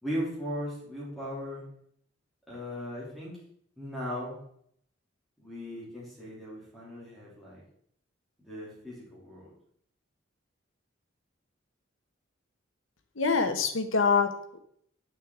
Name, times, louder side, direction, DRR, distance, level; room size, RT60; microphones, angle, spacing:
voice 1, 0.0-1.6 2.5-3.4 3.8-4.4 5.4-7.6 8.4-9.5, equal, ahead, -7 dB, 3.0 m, -37 dB
voice 2, 13.2-14.6, left 5 dB, 75° left, 7 dB, 1.0 m, -25 dB
8.0 x 6.3 x 3.8 m, 0.66 s
head